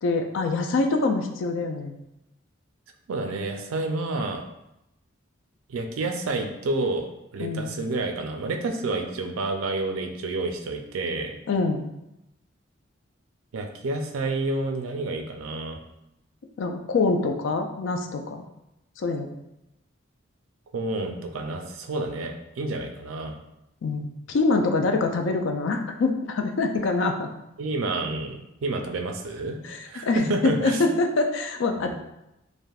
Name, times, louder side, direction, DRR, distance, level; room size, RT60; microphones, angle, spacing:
voice 1, 0.0-1.9 7.4-7.7 11.5-11.8 16.6-18.4 19.0-19.3 23.8-27.3 29.6-31.9, left 3 dB, 65° left, 5 dB, 0.3 m, -25 dB
voice 2, 3.1-4.4 5.7-7.1 7.3-11.4 13.5-15.8 20.7-23.4 27.6-29.6 29.8-30.9 31.7-31.9, right 2 dB, 85° right, 4 dB, 0.4 m, -29 dB
3.3 x 2.5 x 2.3 m, 0.88 s
head